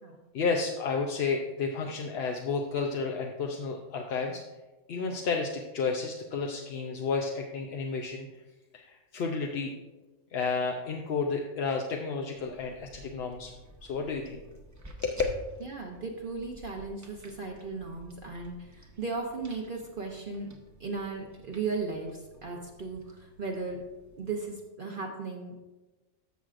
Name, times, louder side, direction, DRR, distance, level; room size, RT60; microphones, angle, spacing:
voice 1, 0.3-4.4 4.9-8.3 8.7-9.7 10.3-13.5 13.8-14.4 15.0-15.2, left 4 dB, 60° left, 2 dB, 0.8 m, -31 dB
sound 1, 12.3-24.5, right 1 dB, 15° right, 0.8 m, -51 dB
voice 2, 15.6-20.5 20.8-23.8 24.2-25.7, right 4 dB, 45° right, 0 dB, 0.9 m, -36 dB
14.0 x 6.2 x 2.5 m, 1.2 s
omnidirectional pair, 1.4 m